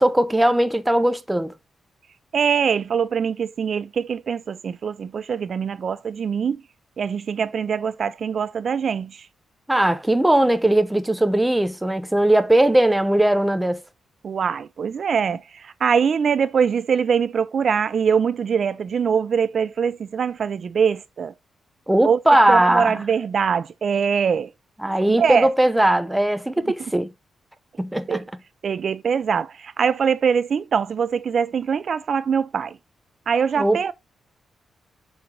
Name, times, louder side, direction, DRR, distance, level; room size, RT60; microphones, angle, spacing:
voice 1, 0.0-1.5 9.7-13.8 21.9-22.9 24.8-27.1 27.8-28.2 33.6-33.8, right 1 dB, 10° right, 0.6 m, -19 dB
voice 2, 2.3-6.6 7.0-9.3 14.2-21.3 22.0-22.2 22.5-24.5 25.2-25.5 28.1-28.2 28.6-32.8 33.3-33.9, right 6 dB, 55° right, 0.3 m, -23 dB
6.2 x 4.7 x 3.6 m
cardioid pair, 115°, 0 cm